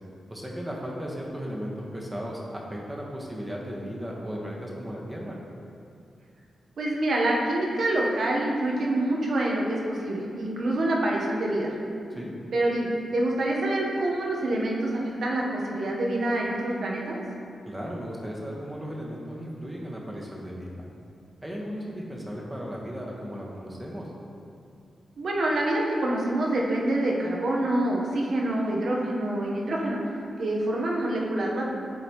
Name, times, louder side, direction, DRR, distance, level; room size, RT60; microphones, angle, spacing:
voice 1, 0.3-5.4 12.1-12.3 17.6-20.9 21.4-24.1, equal, 15° right, -3 dB, 1.3 m, -36 dB
voice 2, 6.8-11.7 12.5-17.2 25.2-30.0 30.4-31.6, right 1 dB, 65° right, -2 dB, 1.1 m, -26 dB
10.5 x 4.0 x 3.1 m, 2.5 s
cardioid pair, 75°, 0 cm